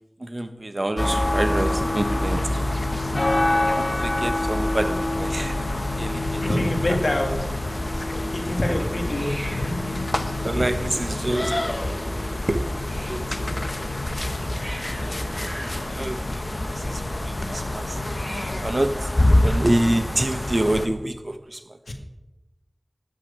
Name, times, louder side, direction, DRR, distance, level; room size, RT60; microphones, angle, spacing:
voice 1, 0.2-2.6 3.7-6.6 10.4-13.9 14.5-14.6 15.0-15.2 15.8-18.0 18.6-19.1 19.4-21.8, right 1 dB, 50° right, 1.1 m, -28 dB
sound 1, 1.0-20.9, left 1 dB, 45° left, 1.0 m, -26 dB
Hiss, 2.7-20.0, equal, 20° right, 4.6 m, -44 dB
voice 2, 6.3-7.7 8.0-10.0 21.9-22.0, left 1 dB, 85° left, 2.0 m, -27 dB
11.5 x 6.4 x 8.7 m
wide cardioid pair, 40°, 0 cm